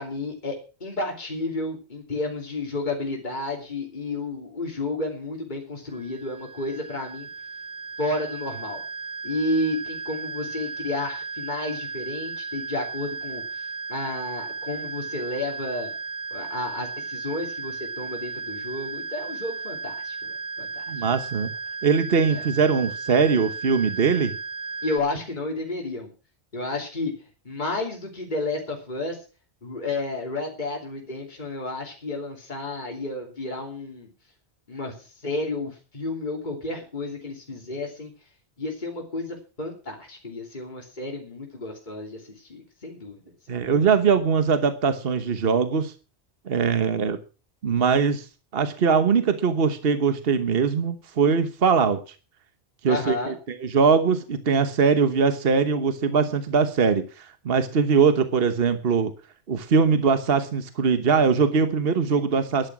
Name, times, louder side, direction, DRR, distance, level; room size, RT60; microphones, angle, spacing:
voice 1, 0.0-7.3 8.0-8.8 9.2-15.9 16.3-21.0 22.3-22.4 24.8-26.1 26.5-27.1 27.4-29.2 29.6-34.1 34.7-38.1 38.6-43.2 43.5-43.8 52.9-53.4, left 2 dB, 45° left, 1 dB, 3.1 m, -31 dB
sound 1, 5.9-25.0, right 5 dB, 15° left, 2.1 m, -35 dB
voice 2, 20.9-21.5 21.8-24.4 43.5-45.9 46.5-47.2 47.6-48.3 48.5-52.0 52.8-59.1 59.5-62.7, right 5 dB, 60° right, 10 dB, 1.3 m, -21 dB
13.0 x 11.0 x 6.1 m, 0.34 s
omnidirectional pair, 1.1 m